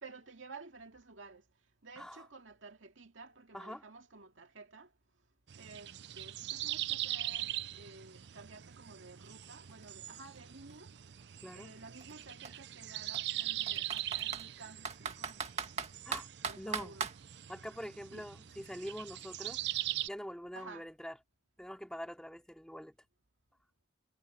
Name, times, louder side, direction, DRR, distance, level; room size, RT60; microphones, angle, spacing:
voice 1, 0.0-1.4 1.8-4.9 5.6-11.0 11.5-15.5 16.4-17.1 18.1-18.2 20.5-20.9, right 3 dB, 85° right, 2.2 m, -53 dB
sound 1, 5.5-20.1, right 14 dB, 60° right, 0.5 m, -41 dB
Computer keyboard, 8.9-9.0 9.3-11.2 12.0-12.1 12.4-12.5 13.1-14.5 14.8-17.2, right 5 dB, 35° right, 1.9 m, -39 dB
voice 2, 11.4-11.7 16.1-16.3 16.6-17.0 17.5-19.6 20.1-21.2 21.6-22.9, equal, 5° left, 3.5 m, -44 dB
head